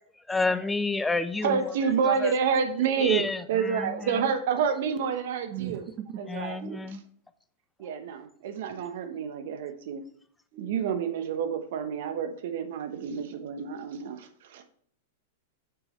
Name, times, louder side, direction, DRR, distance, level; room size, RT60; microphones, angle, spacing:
voice 1, 0.3-1.7 2.1-2.3 3.0-3.9 6.3-7.0, left 3 dB, 10° left, 12 dB, 0.5 m, -29 dB
voice 2, 1.4-3.2 3.5-5.8 6.2-6.6 7.8-10.0 10.6-14.6, right 6 dB, 65° right, 8 dB, 1.0 m, -28 dB
voice 3, 5.5-6.2 6.6-6.9 10.5-10.7, right 10 dB, 40° right, 9 dB, 0.9 m, -38 dB
7.3 x 6.3 x 3.2 m, 0.62 s
hypercardioid pair, 110°, 0 cm